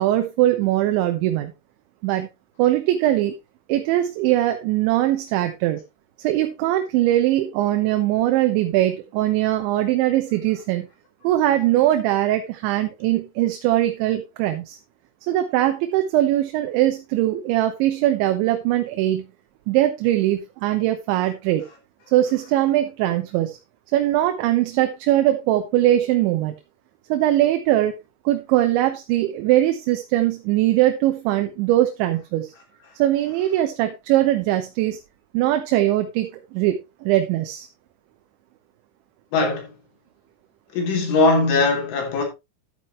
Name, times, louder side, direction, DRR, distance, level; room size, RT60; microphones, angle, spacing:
voice 1, 0.0-1.5 2.0-2.3 2.6-3.3 3.7-5.8 6.2-10.9 11.2-14.8 15.3-19.3 19.7-21.6 22.1-23.6 23.9-26.5 27.1-28.0 28.3-32.5 33.0-35.0 35.3-37.7, right 14 dB, 75° right, 3.1 m, -21 dB
voice 2, 39.3-39.7 40.7-42.2, left 3 dB, 75° left, 5.7 m, -20 dB
11.5 x 9.1 x 3.0 m
omnidirectional pair, 5.6 m